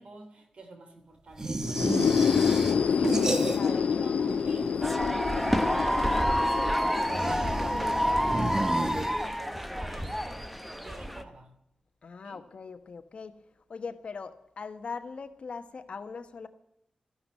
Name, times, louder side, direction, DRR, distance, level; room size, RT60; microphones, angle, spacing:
voice 1, 0.0-3.2 3.7-6.1 6.5-11.5 12.2-12.4, right 2 dB, 60° right, 3.1 m, -49 dB
sound 1, 1.4-4.0 4.2-5.0 7.0-9.5, right 2 dB, 25° right, 1.1 m, -32 dB
sound 2, 1.6-9.3, left 6 dB, 85° left, 0.5 m, -28 dB
voice 2, 3.5-4.1 12.0-13.4 13.7-16.5, left 5 dB, 55° left, 1.2 m, -41 dB
sound 3, 4.8-11.2, equal, ahead, 1.0 m, -28 dB
14.0 x 12.0 x 7.5 m
wide cardioid pair, 160°, 2 cm